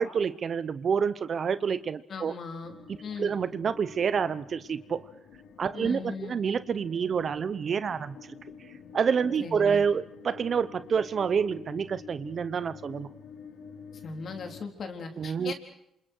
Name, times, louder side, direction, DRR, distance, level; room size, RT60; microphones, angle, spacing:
voice 1, 0.0-2.3 3.2-5.1 5.6-8.4 8.9-13.1 15.2-15.5, right 6 dB, 50° right, 14 dB, 0.9 m, -28 dB
voice 2, 2.1-2.7 3.0-3.3 5.7-6.4 9.4-9.8 13.9-15.5, left 4 dB, 55° left, 4 dB, 3.9 m, -38 dB
sound 1, 2.6-14.6, left 6 dB, 85° left, 3.2 m, -49 dB
28.0 x 27.5 x 4.7 m, 0.77 s
cardioid pair, 90°, 0 cm